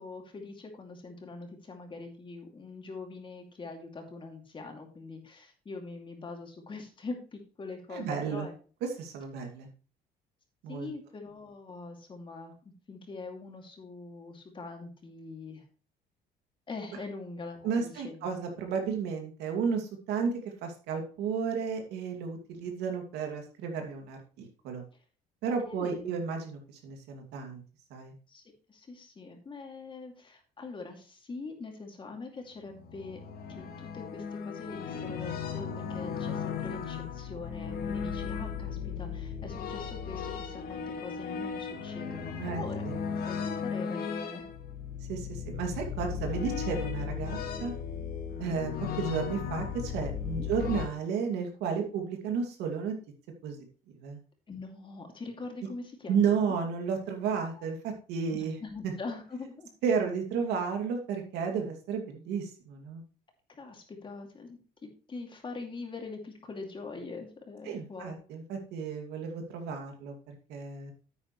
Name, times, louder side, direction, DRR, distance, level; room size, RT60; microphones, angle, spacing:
voice 1, 0.0-8.5 10.7-15.6 16.7-18.3 25.6-26.1 28.3-28.4 28.7-33.2 33.5-42.8 43.3-44.4 50.4-50.5 54.5-56.6 57.3-57.6 58.3-59.7 63.5-68.2, left 3 dB, 30° left, 3 dB, 2.5 m, -43 dB
voice 2, 7.9-8.5 8.8-9.7 10.6-10.9 17.6-24.8 25.4-27.6 27.9-28.2 42.4-43.0 45.1-47.7 48.4-48.7 49.0-52.9 53.4-53.6 54.0-54.2 56.1-58.6 58.8-58.9 59.8-63.0 67.6-70.9, right 6 dB, 85° right, 3 dB, 2.5 m, -33 dB
sound 1, 32.6-50.9, left 7 dB, 65° left, 1.7 m, -36 dB
9.7 x 8.8 x 3.2 m, 0.38 s
cardioid pair, 110°, 17 cm